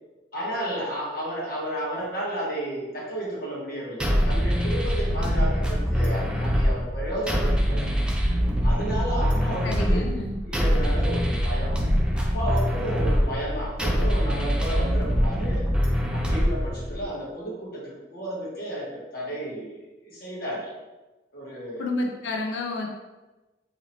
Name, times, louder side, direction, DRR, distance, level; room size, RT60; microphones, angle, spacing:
voice 1, 0.3-8.0 8.6-10.1 10.4-11.8 12.1-15.6 16.1-20.7 21.3-21.9, right 1 dB, 55° left, -4 dB, 1.1 m, -32 dB
sound 1, 4.0-17.0, equal, 5° right, 0.4 m, -24 dB
voice 2, 9.6-10.4 21.8-22.9, left 2 dB, 90° left, 2 dB, 0.5 m, -29 dB
2.8 x 2.8 x 4.0 m, 1.1 s
head